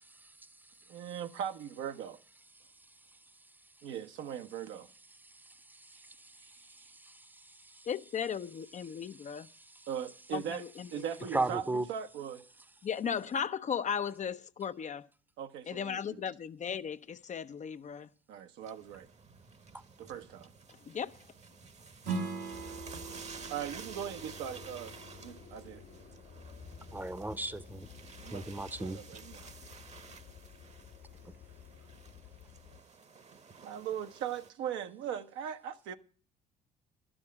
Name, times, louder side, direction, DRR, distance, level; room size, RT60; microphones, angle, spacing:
voice 1, 0.9-2.2 3.8-4.9 9.9-10.6 10.9-12.4 15.4-16.2 18.3-19.1 20.0-20.5 23.5-24.9 25.2-25.8 28.2-29.5 33.6-35.9, right 9 dB, 70° right, 0.9 m, -39 dB
voice 2, 5.3-7.9 9.4-9.9 11.3-11.8 26.9-27.9 28.3-29.0 31.2-31.3, right 2 dB, 10° right, 0.8 m, -38 dB
voice 3, 7.9-9.5 10.3-11.0 11.3-11.4 12.8-15.1 15.7-18.1 20.9-21.2, left 7 dB, 35° left, 0.6 m, -36 dB
sound 1, 18.6-34.5, right 5 dB, 35° right, 1.0 m, -52 dB
Strum, 22.0-27.2, right 4 dB, 85° right, 2.1 m, -42 dB
sound 2, 22.5-32.8, left 7 dB, 70° left, 1.3 m, -53 dB
11.5 x 6.3 x 7.3 m
hypercardioid pair, 60°, 20 cm